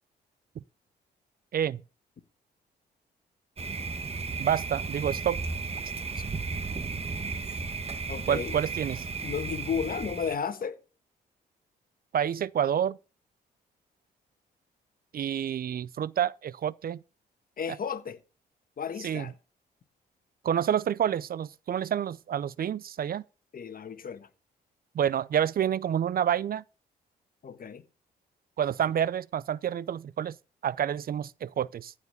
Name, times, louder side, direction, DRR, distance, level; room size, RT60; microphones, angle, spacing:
Thunder, 3.6-10.4, right 4 dB, 35° right, 1.3 m, -34 dB
voice 1, 4.4-5.4 8.3-9.0 12.1-13.0 15.1-17.0 17.7-17.8 19.0-19.3 20.4-23.2 24.9-26.6 28.6-30.4 30.6-31.9, right 9 dB, 55° right, 0.5 m, -28 dB
voice 2, 8.1-8.5 9.2-10.8 17.6-18.2 18.8-19.3 23.5-24.3 27.4-27.8, left 6 dB, 50° left, 1.4 m, -33 dB
15.0 x 5.0 x 6.7 m
supercardioid pair, 60°, 18 cm